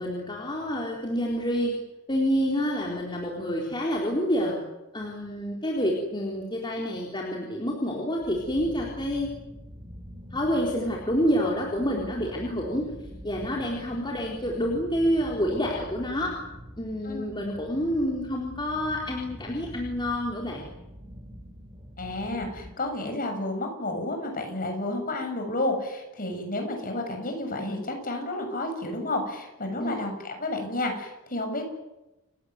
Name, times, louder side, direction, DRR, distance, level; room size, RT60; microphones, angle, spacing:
voice 1, 0.0-1.7 2.1-4.6 4.9-9.3 10.3-12.9 13.2-16.3 16.8-20.6 29.8-30.0, equal, 20° left, -2 dB, 3.9 m, -28 dB
sound 1, 8.2-22.7, equal, 25° right, 4.1 m, -44 dB
voice 2, 22.0-31.6, left 2 dB, 40° left, 4 dB, 7.2 m, -31 dB
29.0 x 17.0 x 9.6 m, 0.98 s
head